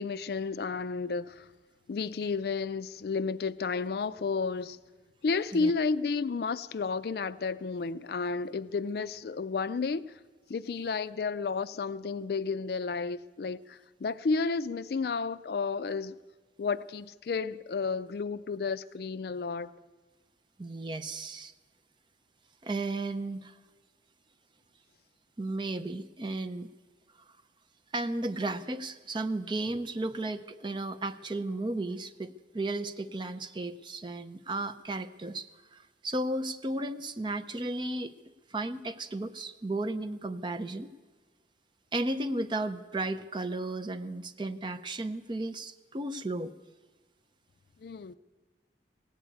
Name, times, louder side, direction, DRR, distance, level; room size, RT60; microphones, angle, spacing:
voice 1, 0.0-1.5 1.9-4.8 5.2-10.1 10.5-16.2 16.6-19.7 47.8-48.1, left 4 dB, 60° left, 0.4 m, -32 dB
voice 2, 20.6-21.5 22.6-23.5 25.4-26.7 27.9-38.1 38.5-40.9 41.9-46.5, right 2 dB, 25° right, 0.5 m, -34 dB
17.5 x 8.3 x 8.5 m
head